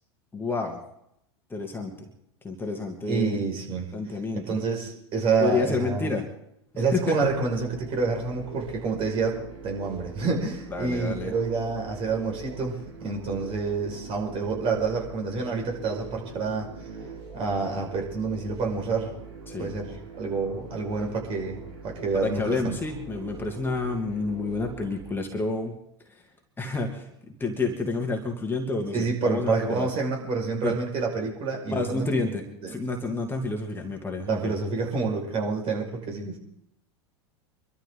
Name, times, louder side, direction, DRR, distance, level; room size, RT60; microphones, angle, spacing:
voice 1, 0.3-0.8 1.5-2.1 2.4-3.4 3.9-4.4 5.4-6.3 6.7-7.2 10.7-11.3 19.5-19.7 22.2-25.7 26.0-26.2 26.6-29.9 30.6-30.7 31.6-34.5, left 3 dB, 15° left, 2 dB, 2.4 m, -29 dB
voice 2, 3.1-3.9 4.5-6.2 6.8-16.7 17.3-19.1 19.6-22.8 28.9-32.3 32.6-32.7 34.3-36.4, right 4 dB, 40° right, 1 dB, 5.5 m, -28 dB
sound 1, 7.2-25.0, right 4 dB, 75° right, 4.8 m, -42 dB
24.5 x 13.0 x 3.9 m, 0.76 s
hypercardioid pair, 100°, 15 cm